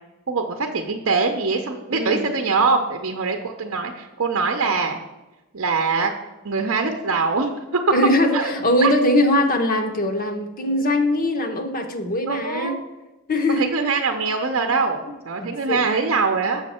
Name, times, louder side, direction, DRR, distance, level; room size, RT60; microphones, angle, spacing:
voice 1, 0.3-5.0 5.5-6.1 6.4-7.8 8.3-8.5 8.8-8.9 12.3-12.8 13.6-16.6, right 4 dB, 65° right, 4 dB, 0.7 m, -23 dB
voice 2, 1.9-2.3 7.9-12.8 13.3-13.7 15.4-15.8, left 1 dB, 40° left, 5 dB, 0.8 m, -21 dB
7.2 x 6.3 x 4.3 m, 1.1 s
head